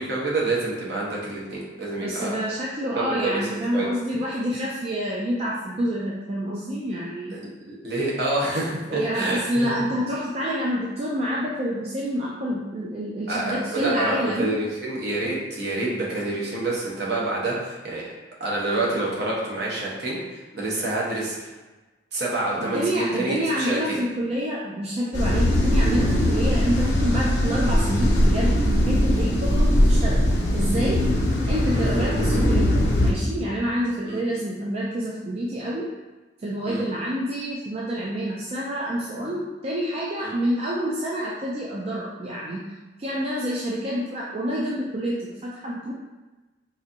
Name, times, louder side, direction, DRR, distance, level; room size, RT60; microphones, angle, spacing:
voice 1, 0.0-2.3 2.9-3.9 7.3-9.9 13.3-18.0 18.4-21.5 22.1-24.0 31.7-31.8 34.0-34.2 36.7-36.8 40.2-40.3, right 2 dB, 60° right, -5 dB, 0.9 m, -27 dB
voice 2, 2.0-7.4 8.9-14.5 22.5-30.3 30.5-31.0 31.5-35.9 36.4-42.6 43.0-45.9, equal, 35° right, -4 dB, 0.3 m, -28 dB
sound 1, 25.1-33.1, equal, 75° left, 0.7 m, -20 dB
4.1 x 2.5 x 2.6 m, 1.2 s
head